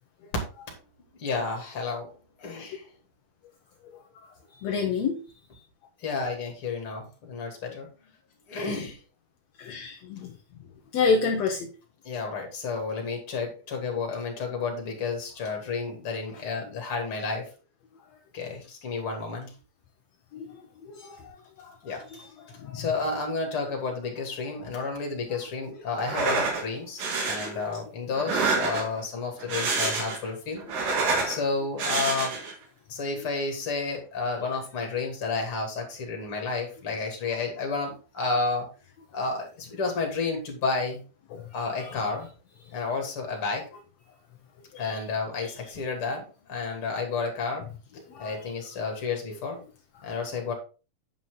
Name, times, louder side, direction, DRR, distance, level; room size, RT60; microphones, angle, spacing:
voice 1, 1.2-2.1 2.4-2.8 6.0-7.9 8.5-9.0 12.0-17.5 18.3-19.5 21.8-22.0 22.5-30.6 31.0-32.4 32.9-38.7 39.1-41.0 41.5-42.3 42.7-43.6 44.8-47.7 48.2-49.6 50.0-50.5, left 4 dB, 40° left, 2 dB, 3.2 m, -31 dB
voice 2, 4.6-5.2 9.6-10.3 10.9-11.7 20.3-20.6 20.9-21.8 22.1-22.2 22.6-22.9 27.4-27.7 31.1-31.3 41.3-42.0 44.7-45.0 45.4-45.5 48.1-48.5 49.3-49.4, left 5 dB, 65° left, 1 dB, 2.1 m, -30 dB
sound 1, 26.0-26.6 27.0-27.5 28.1-29.0 29.4-30.3 30.6-31.4 31.8-32.5, right 4 dB, 75° right, 3.6 m, -27 dB
9.0 x 6.1 x 3.8 m, 0.33 s
omnidirectional pair, 3.9 m